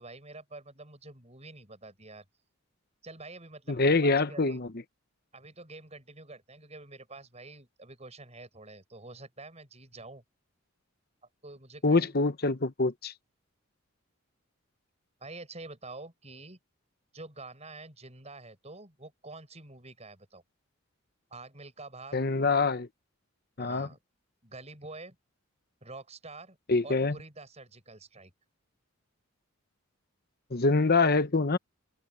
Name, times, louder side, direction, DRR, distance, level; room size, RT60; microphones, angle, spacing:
voice 1, 0.0-2.2 3.0-4.6 5.3-10.2 11.4-12.1 15.2-16.6 17.1-20.4 21.3-22.2 23.6-24.0 24.4-25.2 25.8-26.6 26.8-28.3, right 2 dB, 30° right, 7.4 m, -47 dB
voice 2, 3.7-4.7 11.8-13.1 22.1-22.9 23.6-23.9 26.7-27.2 30.5-31.6, left 3 dB, 45° left, 0.9 m, -25 dB
open air
head